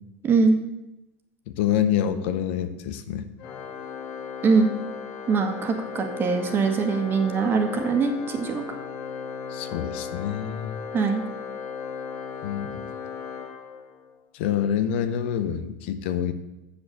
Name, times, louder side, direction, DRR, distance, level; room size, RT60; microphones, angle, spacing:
voice 1, 0.2-0.6 4.4-4.7 5.3-8.6 10.9-11.2, right 4 dB, 35° right, 5 dB, 1.8 m, -22 dB
voice 2, 1.5-3.3 9.5-10.8 12.4-12.9 14.3-16.3, left 9 dB, 75° left, 10 dB, 0.9 m, -27 dB
Organ, 3.4-14.2, left 6 dB, 60° left, 1.4 m, -36 dB
7.1 x 6.7 x 7.8 m, 0.94 s
supercardioid pair, 105°, 6 cm